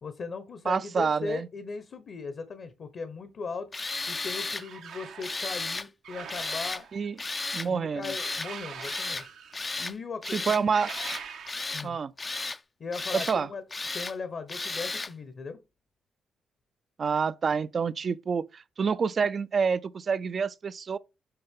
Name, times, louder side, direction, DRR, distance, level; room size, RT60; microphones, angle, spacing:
voice 1, 0.0-3.7 4.1-6.9 7.6-9.3 9.8-10.6 11.7-12.0 12.8-13.6 13.9-15.6, left 4 dB, 55° left, 1.0 m, -38 dB
voice 2, 0.7-1.5 6.9-7.1 7.5-8.1 10.3-10.9 11.8-12.1 13.1-13.5 17.0-21.0, right 5 dB, 50° right, 0.4 m, -28 dB
Tools, 3.7-4.6 5.2-5.9 6.3-6.8 7.2-7.7 8.0-8.5 8.8-9.3 9.5-9.9 10.2-10.6 10.9-11.9 12.2-12.6 12.9-13.4 13.7-14.1 14.5-15.1, left 3 dB, 30° left, 0.4 m, -34 dB
sound 1, 4.5-5.4 6.0-7.1 8.2-9.8 10.6-11.9, right 7 dB, 80° right, 0.9 m, -43 dB
7.8 x 3.9 x 3.7 m
cardioid pair, 70°, 0 cm